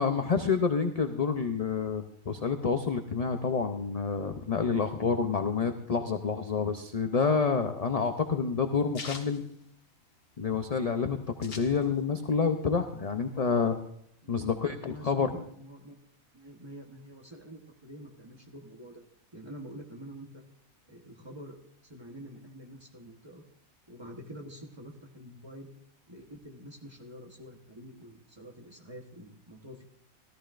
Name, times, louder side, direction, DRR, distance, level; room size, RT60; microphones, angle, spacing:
voice 1, 0.0-9.4 10.4-13.8 14.3-15.3, left 5 dB, 45° left, 6 dB, 0.5 m, -28 dB
sound 1, 7.2-10.4 10.7-10.8 11.0-12.3 12.6-13.8, left 4 dB, 75° left, 1.8 m, -45 dB
voice 2, 14.2-16.0 16.3-19.0 19.3-20.4 20.9-21.6 21.8-23.4 23.9-25.7 26.1-29.8, equal, 20° right, 1 dB, 1.2 m, -47 dB
17.0 x 13.5 x 2.5 m, 0.73 s
omnidirectional pair, 1.4 m